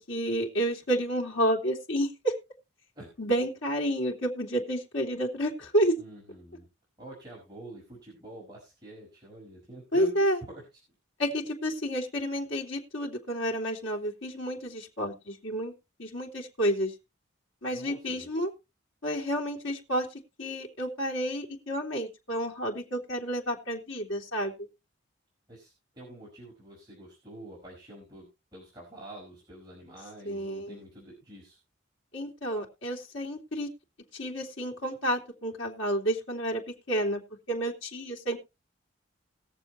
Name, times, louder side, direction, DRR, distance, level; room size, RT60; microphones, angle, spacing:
voice 1, 0.0-2.3 3.2-5.9 9.9-10.4 11.2-15.7 16.0-16.9 17.6-18.5 19.0-20.1 20.4-24.5 30.2-30.8 32.1-33.7 34.1-36.6 36.9-37.2 37.5-38.4, equal, 75° left, -2 dB, 3.1 m, -30 dB
voice 2, 6.0-6.7 7.0-10.6 17.7-18.3 25.5-31.6, right 1 dB, 20° right, -4 dB, 5.1 m, -46 dB
20.5 x 7.3 x 3.0 m, 0.27 s
head